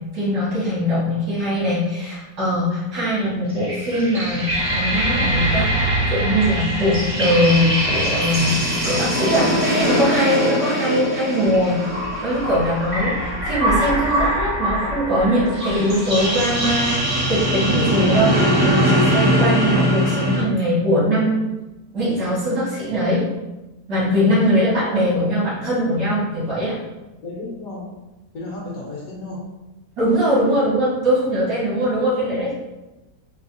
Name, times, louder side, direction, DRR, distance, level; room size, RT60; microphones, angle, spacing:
voice 1, 0.1-11.8 12.2-21.4 21.9-23.2 23.9-26.8 30.0-32.5, equal, 75° right, -8 dB, 2.0 m, -21 dB
sound 1, 3.5-20.4, right 1 dB, 50° right, 0.3 m, -21 dB
voice 2, 24.8-25.4 27.2-28.0 28.3-29.5 31.8-31.9, left 2 dB, 65° left, -3 dB, 1.1 m, -34 dB
4.4 x 2.0 x 2.5 m, 1.0 s
omnidirectional pair, 1.8 m